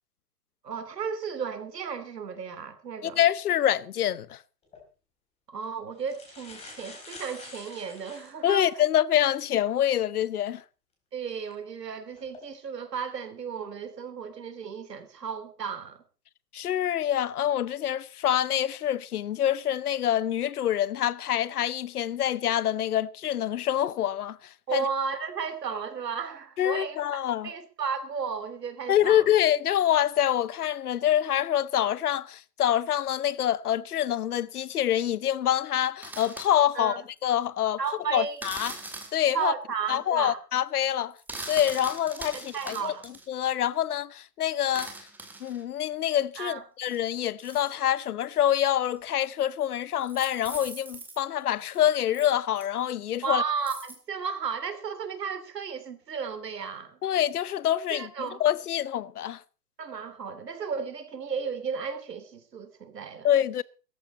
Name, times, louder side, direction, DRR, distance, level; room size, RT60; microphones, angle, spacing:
voice 1, 0.6-3.2 5.5-8.7 11.1-16.0 24.7-29.3 36.7-37.0 37.8-38.4 39.3-40.4 42.3-43.1 46.4-46.6 53.2-57.0 57.9-58.4 59.8-63.3, right 6 dB, 75° right, 3.1 m, -34 dB
voice 2, 3.0-4.4 8.4-10.6 16.5-24.9 26.6-27.5 28.9-36.9 37.2-37.8 38.1-38.7 39.1-39.5 39.9-41.1 41.5-42.9 43.3-44.9 45.4-53.4 57.0-58.1 58.4-59.4 63.2-63.6, left 11 dB, 65° left, 1.0 m, -26 dB
sound 1, 4.6-4.8 5.6-5.7 6.0-8.8 9.4-9.5 11.3-11.5 12.1-12.4, left 3 dB, 10° left, 4.3 m, -47 dB
sound 2, 36.0-36.5 38.4-39.2 41.2-43.3 44.7-45.6 46.8-48.0 49.0-49.1 50.0-51.2 51.7-51.8 52.1-52.3 52.6-52.7 53.7-54.0, right 2 dB, 5° right, 2.0 m, -41 dB
17.0 x 14.0 x 4.3 m
hypercardioid pair, 140°, 49 cm